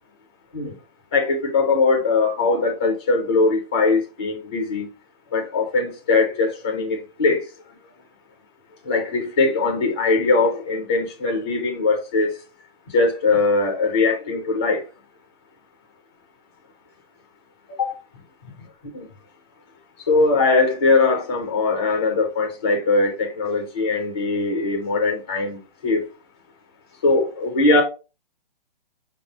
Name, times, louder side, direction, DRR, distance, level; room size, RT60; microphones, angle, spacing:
voice 1, 1.1-4.9 5.3-7.4 8.9-12.3 12.9-14.8 17.8-17.9 18.9-19.0 20.1-26.0 27.0-27.8, left 3 dB, 10° left, 0.3 m, -21 dB
5.2 x 3.5 x 2.7 m
hypercardioid pair, 160°, 29 cm